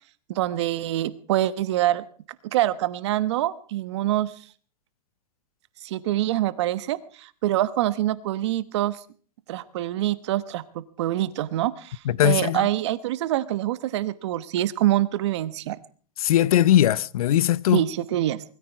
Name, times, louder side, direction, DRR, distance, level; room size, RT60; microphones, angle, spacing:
voice 1, 0.3-2.0 2.5-4.3 5.8-9.0 9.5-15.8 17.7-18.4, right 14 dB, 45° right, 1.2 m, -25 dB
voice 2, 12.1-12.7 16.2-17.8, left 12 dB, 65° left, 0.7 m, -20 dB
20.5 x 14.0 x 4.6 m
supercardioid pair, 175°, 20 cm